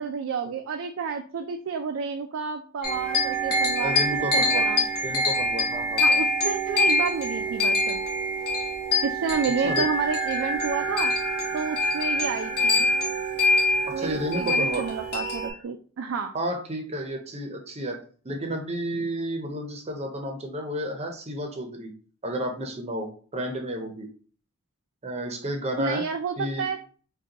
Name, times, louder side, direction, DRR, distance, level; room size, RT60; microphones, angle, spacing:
voice 1, 0.0-4.9 6.0-8.0 9.0-11.1 11.5-12.9 13.9-16.3 25.8-26.8, right 5 dB, 60° right, 6 dB, 0.4 m, -30 dB
sound 1, 2.8-15.5, left 1 dB, 50° left, 1.0 m, -25 dB
voice 2, 3.7-4.7 5.0-6.2 9.6-9.9 13.9-14.8 16.3-18.0 18.2-21.9 22.2-24.1 25.0-26.0 26.4-26.7, equal, 30° right, 3 dB, 0.7 m, -31 dB
sound 2, 7.3-15.6, left 1 dB, 65° left, 1.4 m, -37 dB
5.1 x 2.3 x 2.8 m, 0.41 s
head